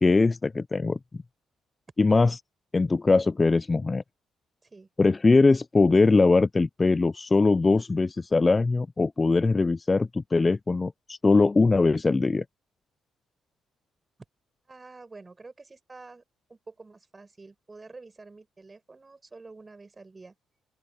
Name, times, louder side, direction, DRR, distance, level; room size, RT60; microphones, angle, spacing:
voice 1, 0.0-1.0 2.0-2.4 2.7-4.0 5.0-12.4, left 3 dB, 25° left, 0.4 m, -21 dB
voice 2, 14.7-16.2 16.5-20.3, right 3 dB, 25° right, 7.9 m, -48 dB
open air
cardioid pair, 90°, 0 cm